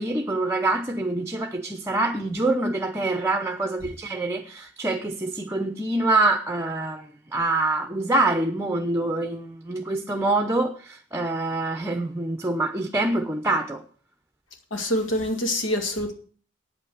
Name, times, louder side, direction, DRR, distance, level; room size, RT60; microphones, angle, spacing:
voice 1, 0.0-13.8, right 2 dB, 15° right, 0.8 m, -25 dB
voice 2, 14.7-16.1, left 1 dB, 90° left, 2.3 m, -25 dB
9.3 x 8.5 x 7.8 m
head